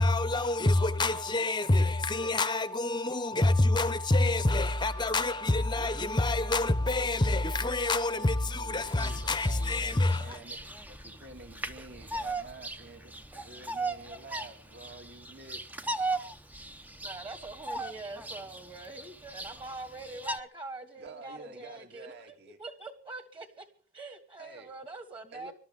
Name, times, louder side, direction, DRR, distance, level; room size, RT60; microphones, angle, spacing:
voice 1, 0.0-10.3, left 2 dB, 20° left, 0.9 m, -27 dB
voice 2, 8.1-10.6 10.9-15.6 21.0-22.6 24.4-24.7 25.3-25.5, right 2 dB, 50° right, 2.2 m, -49 dB
Bird vocalization bird call bird song, 8.8-20.4, right 2 dB, 5° right, 0.8 m, -39 dB
voice 3, 17.0-23.7 23.9-25.5, right 3 dB, 25° right, 1.8 m, -44 dB
25.5 x 12.5 x 3.7 m
head